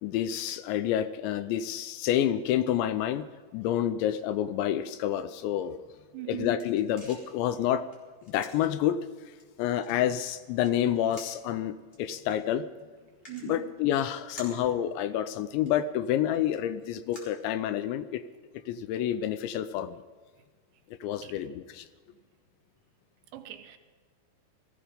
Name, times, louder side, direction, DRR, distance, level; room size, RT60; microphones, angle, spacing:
voice 1, 0.0-3.3 3.5-5.8 6.3-7.9 8.3-9.0 9.6-12.7 13.4-18.2 18.7-20.0 21.0-21.9, left 11 dB, 80° left, 12 dB, 2.8 m, -28 dB
sound 1, 6.0-18.1, equal, 15° left, 3.3 m, -54 dB
voice 2, 6.1-6.6 13.3-13.7 21.2-21.4 23.3-23.8, right 13 dB, 80° right, 7 dB, 3.2 m, -40 dB
19.0 x 14.5 x 5.1 m, 1.5 s
omnidirectional pair, 5.4 m